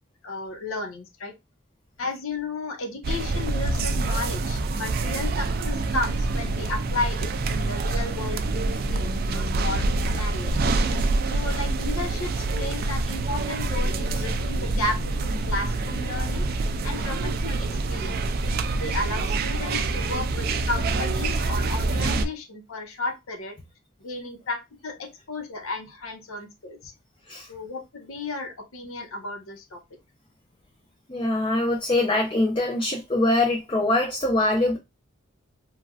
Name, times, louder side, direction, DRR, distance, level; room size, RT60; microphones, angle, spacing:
voice 1, 0.2-1.3 2.0-8.4 8.9-10.5 11.3-16.5 16.8-18.2 18.8-23.6 24.0-26.9 27.5-29.8, left 2 dB, 80° left, 0.8 m, -33 dB
sound 1, 3.0-22.2, right 2 dB, 45° right, 0.3 m, -26 dB
voice 2, 31.1-34.8, left 2 dB, 25° left, 0.4 m, -23 dB
3.1 x 2.5 x 2.3 m
head